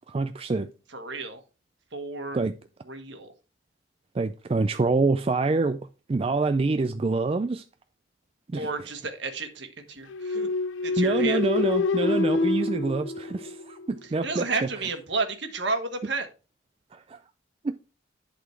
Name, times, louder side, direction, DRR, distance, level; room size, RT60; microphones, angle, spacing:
voice 1, 0.1-0.7 2.3-2.5 4.1-5.8 6.1-7.6 8.5-8.7 11.0-14.5 16.9-17.2 17.6-17.8, right 3 dB, 30° right, 0.3 m, -26 dB
voice 2, 0.9-1.4 1.9-2.4 2.9-3.3 8.5-10.5 10.8-11.4 14.2-16.3, right 3 dB, 65° right, 1.5 m, -32 dB
sound 1, 10.1-13.9, left 3 dB, 80° left, 0.5 m, -26 dB
11.0 x 4.2 x 4.5 m
head